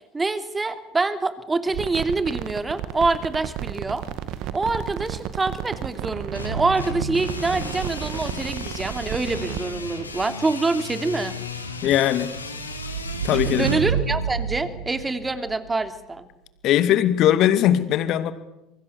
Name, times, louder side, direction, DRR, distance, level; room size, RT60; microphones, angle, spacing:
voice 1, 0.1-4.0 4.5-11.3 13.3-16.3, right 3 dB, 15° right, 9 dB, 3.0 m, -26 dB
sound 1, 1.7-10.3, right 11 dB, 55° right, 1.8 m, -33 dB
sound 2, 6.3-13.8, left 2 dB, 90° left, 3.3 m, -35 dB
voice 2, 11.8-12.3 13.2-13.7 16.6-18.3, left 11 dB, 50° left, 11 dB, 2.5 m, -19 dB
sound 3, 11.8-15.7, right 7 dB, 80° right, 1.6 m, -29 dB
27.0 x 24.0 x 7.2 m, 0.91 s
figure-of-eight pair, 70°, 0 cm